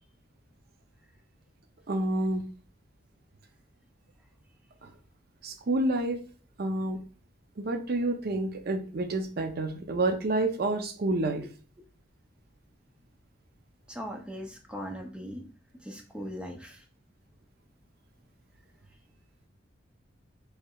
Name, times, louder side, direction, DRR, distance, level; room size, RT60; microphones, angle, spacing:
voice 1, 1.9-2.4 4.8-4.9 5.4-6.2 6.6-7.0 7.6-11.5, right 2 dB, 55° right, 6 dB, 0.5 m, -29 dB
voice 2, 13.9-15.4 15.8-16.8, equal, 5° right, 2 dB, 0.5 m, -39 dB
4.7 x 3.1 x 2.3 m, 0.38 s
head